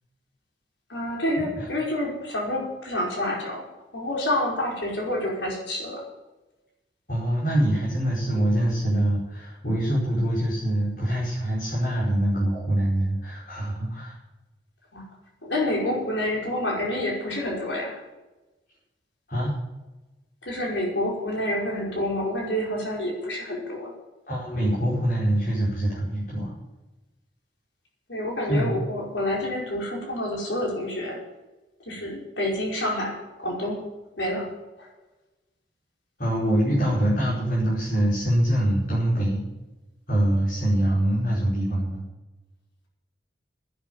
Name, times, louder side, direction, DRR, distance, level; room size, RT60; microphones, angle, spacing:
voice 1, 0.9-3.7 3.9-6.0 14.9-15.0 15.4-17.9 20.4-23.9 28.1-31.2 31.9-33.8 34.2-34.5 34.8-34.9, left 1 dB, 85° left, -2 dB, 5.1 m, -28 dB
voice 2, 7.1-14.2 19.3-19.5 24.3-26.5 28.5-28.8 36.2-39.4 40.1-42.0, right 1 dB, 50° left, -7 dB, 5.2 m, -24 dB
11.0 x 9.7 x 9.7 m, 1.1 s
head